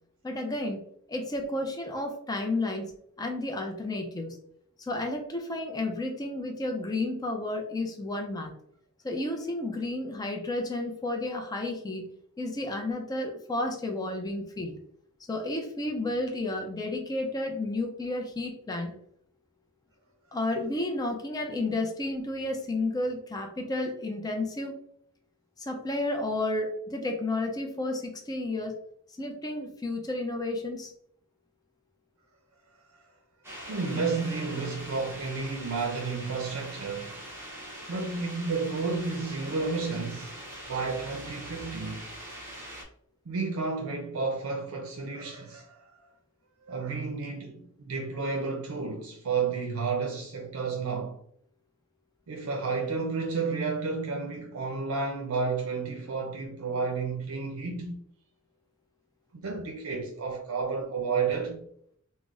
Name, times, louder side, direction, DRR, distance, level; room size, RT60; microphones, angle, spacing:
voice 1, 0.2-2.9 3.2-4.4 4.8-8.5 9.0-12.1 12.4-14.8 15.3-19.0 20.3-24.8 25.6-28.8 29.2-30.9, left 2 dB, 20° left, 0.4 m, -32 dB
sound 1, 33.4-42.8, right 1 dB, 10° right, 0.7 m, -43 dB
voice 2, 33.7-37.2 37.9-40.4 40.7-42.1 43.3-46.1 46.6-51.2 52.3-58.0 59.3-61.7, right 4 dB, 70° right, 0.5 m, -31 dB
3.8 x 2.0 x 2.4 m
head